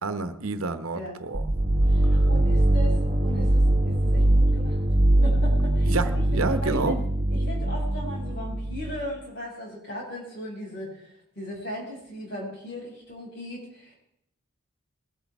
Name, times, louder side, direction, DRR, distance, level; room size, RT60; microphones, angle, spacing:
voice 1, 0.0-1.5 5.8-7.0, right 3 dB, 80° right, 1.0 m, -28 dB
sound 1, 1.3-9.1, right 1 dB, 35° right, 1.3 m, -22 dB
voice 2, 1.9-4.8 5.2-6.2 6.6-7.0 7.3-13.9, left 1 dB, 55° left, 6.4 m, -37 dB
21.0 x 12.5 x 3.6 m
head